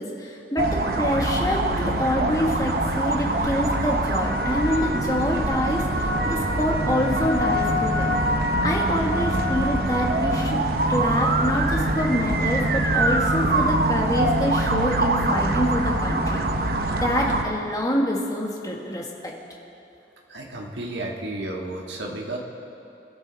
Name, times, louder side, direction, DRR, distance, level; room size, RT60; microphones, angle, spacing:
voice 1, 0.0-8.1 8.6-10.6 10.9-16.4 16.9-19.3, equal, 20° left, -1 dB, 1.8 m, -26 dB
sound 1, 0.6-17.4, right 1 dB, 55° right, 1.0 m, -23 dB
voice 2, 20.3-22.4, right 2 dB, 85° right, -1 dB, 1.9 m, -32 dB
27.0 x 12.0 x 4.2 m, 2.8 s
head